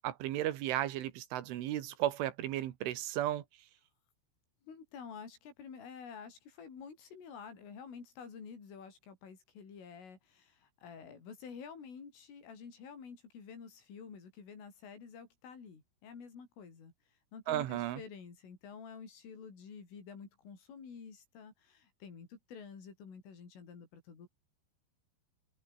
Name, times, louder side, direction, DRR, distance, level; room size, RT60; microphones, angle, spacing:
voice 1, 0.0-3.4 17.5-18.0, right 13 dB, 75° right, 4.0 m, -34 dB
voice 2, 4.7-24.3, left 6 dB, 75° left, 8.9 m, -50 dB
omnidirectional pair, 5.8 m